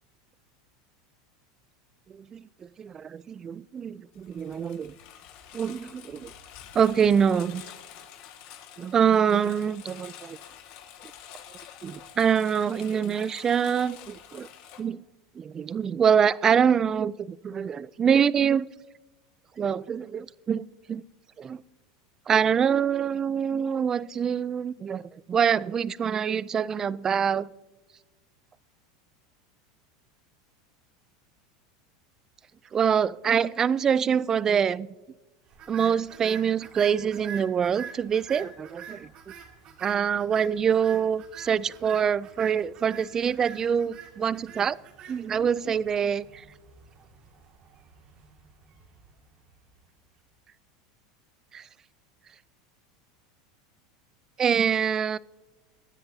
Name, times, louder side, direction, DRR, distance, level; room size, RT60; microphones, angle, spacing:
voice 1, 2.1-4.9 5.5-6.3 6.7-7.6 8.8-10.4 11.8-14.5 14.8-15.0 15.4-18.7 19.6-21.0 21.4-21.6 22.3-25.0 25.3-27.5 32.7-34.9 35.7-39.1 39.8-44.8 45.1-46.4 51.5-51.6 54.4-55.2, right 7 dB, 25° right, 0.4 m, -25 dB
Engine, 4.1-14.8, left 9 dB, 60° left, 1.8 m, -48 dB
sound 1, 35.5-49.8, right 8 dB, 45° right, 2.2 m, -46 dB
23.0 x 10.0 x 2.8 m
supercardioid pair, 120°, 2 cm